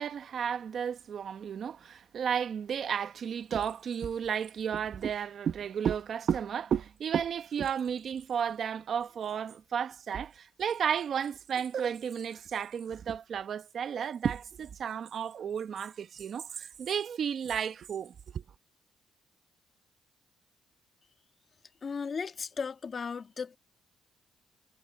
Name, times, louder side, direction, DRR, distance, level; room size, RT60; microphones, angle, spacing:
voice 1, 0.0-18.4, right 8 dB, 60° right, 1.2 m, -33 dB
voice 2, 21.8-23.6, left 5 dB, 45° left, 2.1 m, -36 dB
cardioid pair, 90°, 0 cm